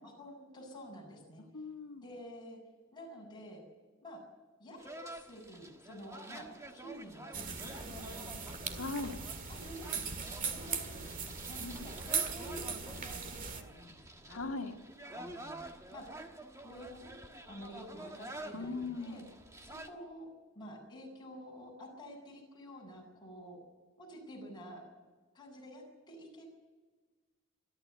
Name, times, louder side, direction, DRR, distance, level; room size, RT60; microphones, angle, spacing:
voice 1, 0.0-1.4 2.0-2.6 2.9-3.6 4.0-4.2 4.6-8.8 9.5-10.1 10.4-14.5 15.1-15.6 15.9-16.1 16.6-17.1 17.5-19.2 19.6-20.3 20.5-23.6 24.0-24.9 25.3-26.5, equal, 20° left, -2 dB, 7.2 m, -49 dB
voice 2, 1.5-2.0 8.7-9.1 11.6-11.9 14.3-14.8 18.5-19.3, left 3 dB, 75° left, 4 dB, 1.9 m, -39 dB
sound 1, 4.8-19.9, right 1 dB, 15° right, 1.5 m, -49 dB
sound 2, 7.3-13.6, right 6 dB, 40° right, 1.9 m, -39 dB
28.0 x 12.5 x 8.1 m, 1.3 s
head